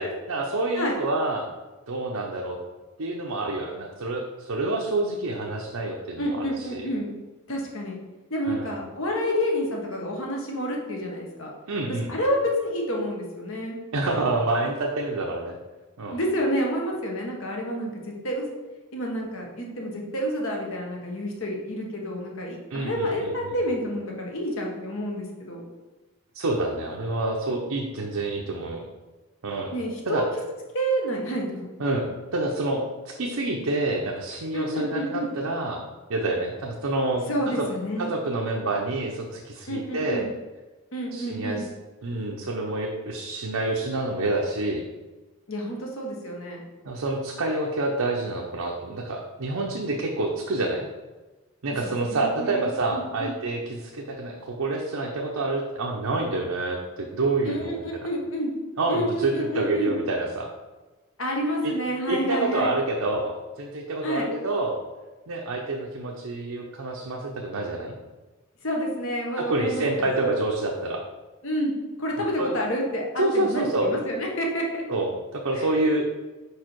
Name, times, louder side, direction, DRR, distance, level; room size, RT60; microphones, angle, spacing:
voice 1, 0.0-1.5 1.9-2.6 3.0-6.9 8.4-8.7 11.7-12.1 13.9-15.6 16.0-16.2 22.7-23.6 26.3-28.8 29.4-29.7 30.1-30.2 31.8-35.8 36.1-37.7 38.0-40.2 41.1-41.6 42.0-44.8 46.8-50.9 51.6-58.1 58.8-60.5 61.6-61.7 62.1-64.8 65.3-67.9 69.4-71.0 72.4-72.5 73.2-73.9 74.9-76.1, right 2 dB, 90° right, -1 dB, 0.7 m, -27 dB
voice 2, 6.2-7.1 7.5-8.0 8.3-11.5 12.1-13.8 16.1-18.5 18.9-25.6 29.7-30.3 30.7-31.7 34.5-35.3 37.3-38.1 39.7-40.3 40.9-41.7 45.5-46.6 52.1-53.3 57.4-58.5 58.9-59.9 61.2-62.7 64.0-64.3 68.6-70.1 71.4-71.7 72.0-74.8 75.5-75.9, equal, 65° left, 0 dB, 1.3 m, -29 dB
5.2 x 4.8 x 4.5 m, 1.2 s
head